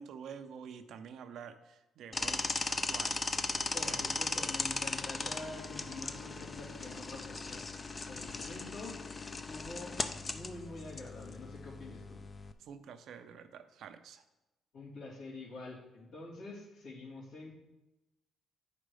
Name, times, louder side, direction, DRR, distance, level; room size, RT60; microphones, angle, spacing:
voice 1, 0.0-3.5 3.8-4.0 12.6-14.2, right 7 dB, 70° right, 9 dB, 0.6 m, -48 dB
sound 1, 2.1-12.5, left 3 dB, 30° left, 0.5 m, -38 dB
voice 2, 3.7-7.6 8.1-9.0 9.3-10.0 10.3-12.2 14.7-17.5, left 2 dB, 80° left, -6 dB, 3.3 m, -46 dB
8.9 x 5.1 x 4.9 m, 1.0 s
cardioid pair, 90°, 0 cm